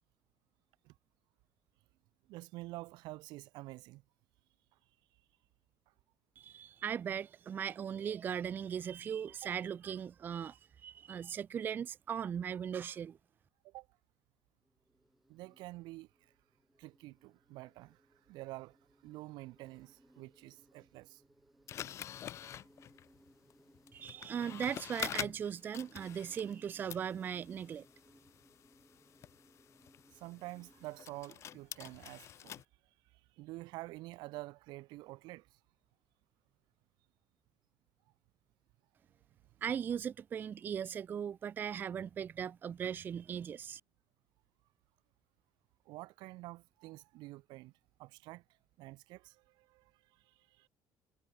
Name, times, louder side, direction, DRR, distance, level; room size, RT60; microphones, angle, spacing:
voice 1, 2.3-4.0 9.4-9.5 13.6-13.9 15.3-16.3 16.8-18.0 18.3-18.8 19.0-21.2 22.4-22.6 30.1-32.6 33.1-35.6 45.9-47.7 48.0-48.4 48.8-50.7, right 20 dB, 80° right, 0.7 m, -48 dB
voice 2, 6.4-13.2 23.9-27.8 39.6-43.8, right 8 dB, 25° right, 0.4 m, -38 dB
Insect, 14.6-31.3, right 1 dB, ahead, 5.6 m, -67 dB
sound 1, 21.7-26.6 26.9-32.6, left 10 dB, 40° left, 1.1 m, -46 dB
cardioid pair, 175°, 7 cm